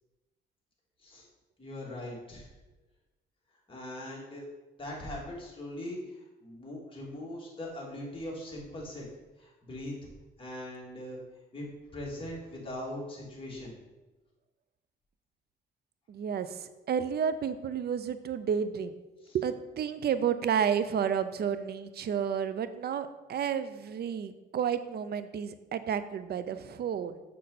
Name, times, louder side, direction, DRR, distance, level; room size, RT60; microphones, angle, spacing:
voice 1, 1.6-2.5 3.7-4.5 4.8-9.1 9.4-10.1 10.4-11.2 11.5-11.7 11.9-13.7 19.2-19.4, left 1 dB, 25° left, -4 dB, 2.7 m, -40 dB
voice 2, 16.1-18.9 19.3-27.2, right 8 dB, 55° right, 12 dB, 0.6 m, -31 dB
6.6 x 6.5 x 4.1 m, 1.1 s
cardioid pair, 90°, 20 cm